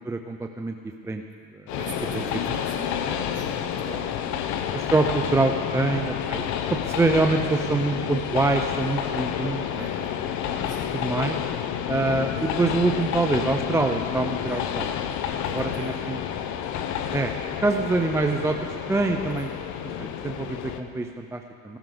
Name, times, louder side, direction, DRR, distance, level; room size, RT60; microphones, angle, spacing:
voice 1, 0.0-1.2 2.1-2.2 4.7-6.4 6.7-9.9 10.9-11.4 11.9-14.9 15.5-16.2 17.1-17.3 17.6-18.6 18.9-19.5 20.0-21.8, right 3 dB, 10° right, 5 dB, 0.4 m, -25 dB
Train, 1.7-20.8, left 9 dB, 55° left, 0.9 m, -30 dB
voice 2, 1.7-4.5 7.7-8.0 9.7-11.0 11.3-11.5 15.4-16.1 19.2-19.3, right 4 dB, 45° right, -5 dB, 3.9 m, -42 dB
16.0 x 12.5 x 3.8 m, 2.4 s
supercardioid pair, 105°, 35 cm